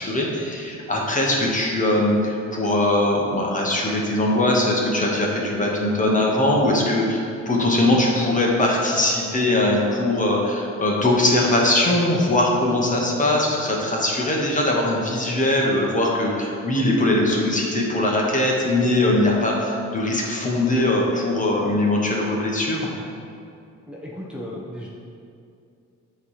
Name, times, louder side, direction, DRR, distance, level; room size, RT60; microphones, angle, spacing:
voice 1, 0.0-22.9, left 1 dB, 25° left, -2 dB, 1.3 m, -21 dB
voice 2, 23.9-24.9, equal, 5° right, -6 dB, 1.0 m, -35 dB
7.9 x 3.4 x 5.7 m, 2.5 s
cardioid pair, 90°, 30 cm